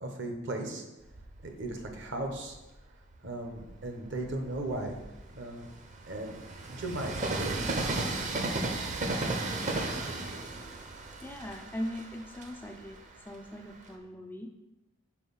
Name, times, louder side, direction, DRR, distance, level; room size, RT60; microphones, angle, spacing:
voice 1, 0.0-0.8 1.4-2.6 3.2-5.0 5.3-5.7 6.1-6.4 6.7-7.6, right 2 dB, 60° right, 3 dB, 0.9 m, -36 dB
Train, 1.1-2.7 3.3-13.9, right 2 dB, 40° right, 0.6 m, -36 dB
voice 2, 11.2-13.0 13.3-14.5, left 1 dB, 10° left, 4 dB, 0.3 m, -40 dB
4.6 x 3.9 x 5.4 m, 1.0 s
head